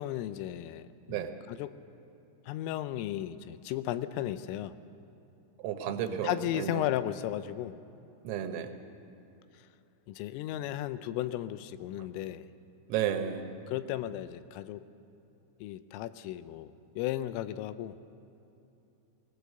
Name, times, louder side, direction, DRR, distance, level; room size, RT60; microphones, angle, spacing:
voice 1, 0.0-1.7 2.5-4.8 6.2-7.8 10.1-12.5 13.7-14.8 15.6-18.0, left 13 dB, 85° left, 13 dB, 3.3 m, -35 dB
voice 2, 5.6-6.8 8.3-8.7 12.9-13.5, right 9 dB, 90° right, 6 dB, 3.9 m, -32 dB
20.5 x 19.5 x 6.7 m, 2.9 s
omnidirectional pair, 5.8 m